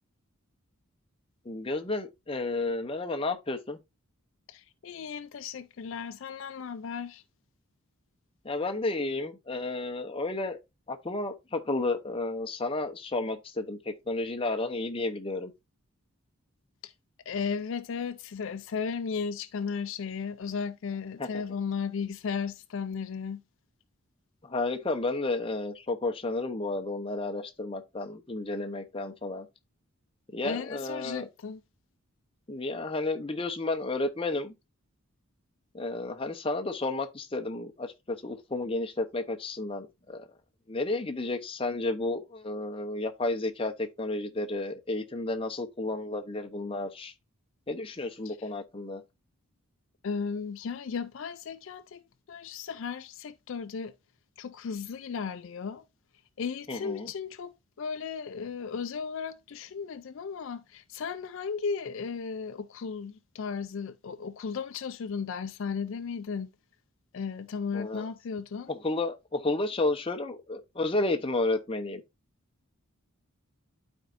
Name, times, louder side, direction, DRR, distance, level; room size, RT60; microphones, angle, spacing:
voice 1, 1.5-3.8 8.4-10.6 10.9-15.5 21.2-21.3 24.4-29.5 30.3-31.3 32.5-34.5 35.7-40.3 40.7-47.1 47.7-49.0 56.7-57.1 67.7-68.0 68.7-72.0, left 2 dB, 25° left, 0.7 m, -32 dB
voice 2, 4.5-7.2 16.8-16.9 17.3-23.4 30.4-31.6 48.2-48.5 50.0-53.9 54.4-55.8 56.4-66.5 67.1-68.7, left 6 dB, 60° left, 0.4 m, -35 dB
12.0 x 4.4 x 2.5 m
head